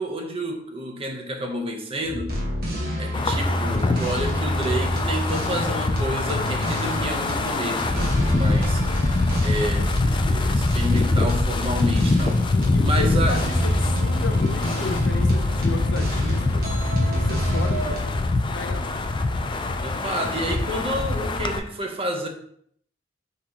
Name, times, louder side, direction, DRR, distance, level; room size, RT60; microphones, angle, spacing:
voice 1, 0.0-2.3 3.0-9.2 9.4-12.5 12.8-13.4 19.8-22.3, right 1 dB, 30° right, 0.7 m, -30 dB
sound 1, 2.0-18.0, equal, 55° right, 1.3 m, -29 dB
Wind, 3.1-21.6, left 2 dB, 25° left, 0.3 m, -24 dB
voice 2, 11.8-16.7 17.1-18.3 18.5-19.1, left 3 dB, 90° left, 0.7 m, -35 dB
4.7 x 3.8 x 2.9 m
head